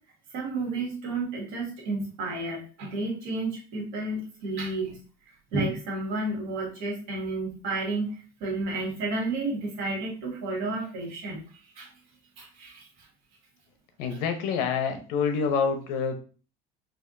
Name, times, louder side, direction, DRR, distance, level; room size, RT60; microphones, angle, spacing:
voice 1, 0.3-5.0 5.5-8.1 8.4-11.4 11.7-11.9 12.4-12.8 14.1-14.2, right 2 dB, 90° right, -1 dB, 1.7 m, -31 dB
voice 2, 14.0-16.1, left 6 dB, 85° left, 6 dB, 0.8 m, -27 dB
4.2 x 2.5 x 2.6 m, 0.37 s
cardioid pair, 175°, 14 cm